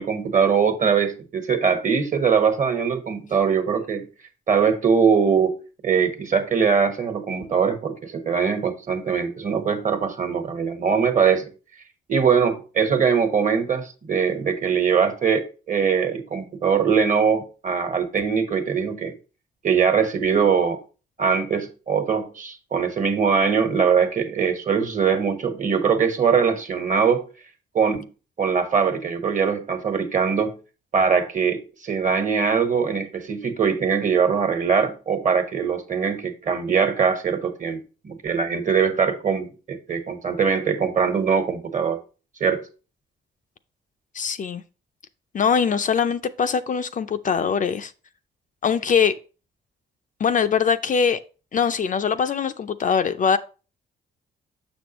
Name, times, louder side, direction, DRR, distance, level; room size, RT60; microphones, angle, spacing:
voice 1, 0.0-4.1 4.5-5.5 5.8-11.4 12.1-19.1 19.6-20.8 21.2-27.2 27.7-28.1 28.4-30.6 30.9-42.0 42.4-42.6, right 6 dB, 40° right, 1.3 m, -22 dB
voice 2, 44.1-44.6 45.3-47.9 48.6-49.1 50.2-51.2 51.5-53.4, left 6 dB, 40° left, 0.4 m, -22 dB
6.4 x 6.2 x 2.9 m
cardioid pair, 85°, 20 cm